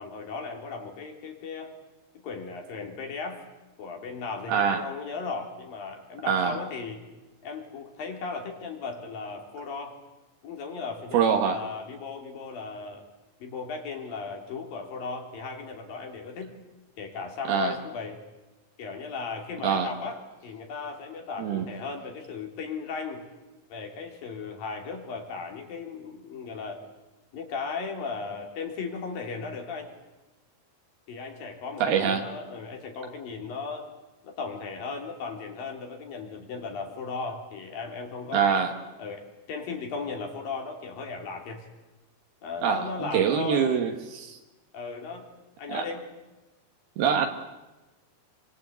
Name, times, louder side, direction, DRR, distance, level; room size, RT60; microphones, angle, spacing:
voice 1, 0.0-1.7 2.2-3.4 3.8-7.0 7.4-10.0 10.4-13.1 13.4-16.5 17.0-18.2 18.8-23.3 23.7-26.8 27.3-29.9 31.1-33.9 34.2-38.7 39.0-41.7 42.4-43.8 44.7-45.3 45.6-46.1, left 4 dB, 65° left, 3 dB, 5.3 m, -36 dB
voice 2, 4.5-4.9 6.3-6.6 11.1-11.6 17.5-17.7 19.6-19.9 21.4-21.7 31.8-32.3 38.3-38.7 42.6-44.4 45.7-45.8 47.0-47.3, right 7 dB, 80° right, 4 dB, 3.5 m, -24 dB
28.5 x 24.0 x 8.3 m, 1.1 s
omnidirectional pair, 4.4 m